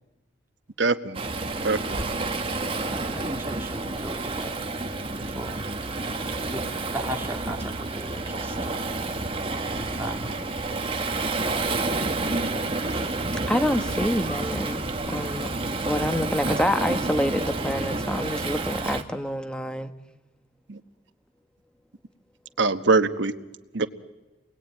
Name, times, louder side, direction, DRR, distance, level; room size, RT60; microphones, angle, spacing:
voice 1, 0.8-1.2 1.6-2.0 20.7-20.8 22.6-23.3 23.7-23.9, right 3 dB, 60° right, 1.3 m, -23 dB
Waves surf, 1.1-19.0, right 2 dB, 25° right, 1.6 m, -29 dB
voice 2, 2.9-4.5 5.2-5.6 6.5-6.6 6.9-9.1 9.7-10.3, right 1 dB, 10° right, 2.3 m, -37 dB
voice 3, 13.5-15.5 15.8-19.9, equal, 5° left, 1.2 m, -27 dB
30.0 x 21.0 x 9.1 m
head